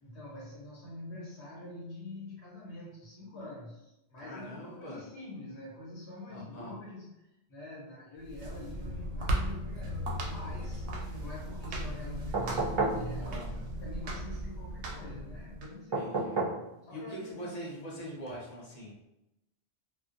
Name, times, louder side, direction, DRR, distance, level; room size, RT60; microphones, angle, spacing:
voice 1, 0.0-7.2 7.5-10.9 11.1-16.2 16.8-17.5, left 2 dB, 85° left, -5 dB, 1.2 m, -46 dB
voice 2, 4.2-5.0 6.3-6.8 13.2-13.5 15.9-16.5 16.9-18.9, equal, 45° left, -4 dB, 0.6 m, -43 dB
sound 1, 8.2-15.7, equal, 90° right, 0.8 m, -36 dB
sound 2, 12.3-13.1 15.9-16.6 18.2-18.3, right 3 dB, 45° right, 0.4 m, -30 dB
2.4 x 2.1 x 2.5 m, 0.90 s
omnidirectional pair, 1.1 m